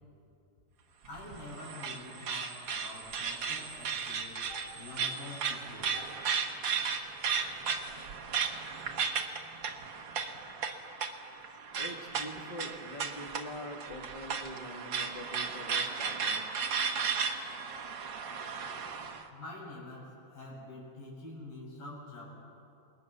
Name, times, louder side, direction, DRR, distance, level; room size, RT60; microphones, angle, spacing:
sound 1, 1.0-19.2, right 6 dB, 75° right, 1.0 m, -35 dB
voice 1, 1.1-6.1 19.3-22.3, left 2 dB, 70° left, -4 dB, 8.6 m, -46 dB
voice 2, 11.7-16.8, left 1 dB, 20° left, 1 dB, 1.5 m, -44 dB
28.5 x 21.5 x 6.9 m, 2.6 s
omnidirectional pair, 4.2 m